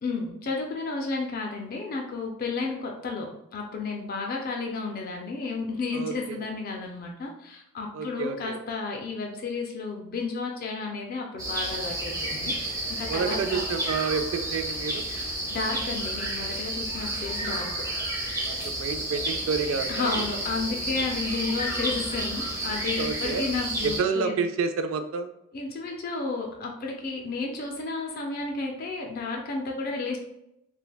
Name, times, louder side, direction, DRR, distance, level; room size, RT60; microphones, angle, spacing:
voice 1, 0.0-12.5 13.0-13.7 15.5-17.9 19.9-24.4 25.5-30.2, left 3 dB, 45° left, 1 dB, 0.4 m, -32 dB
voice 2, 5.9-6.4 7.9-8.6 13.1-15.0 18.4-20.2 23.0-23.4 23.8-25.3, right 5 dB, 75° right, 8 dB, 0.3 m, -29 dB
sound 1, 11.4-24.0, right 1 dB, 15° right, 0.6 m, -31 dB
3.3 x 2.1 x 2.2 m, 0.81 s
head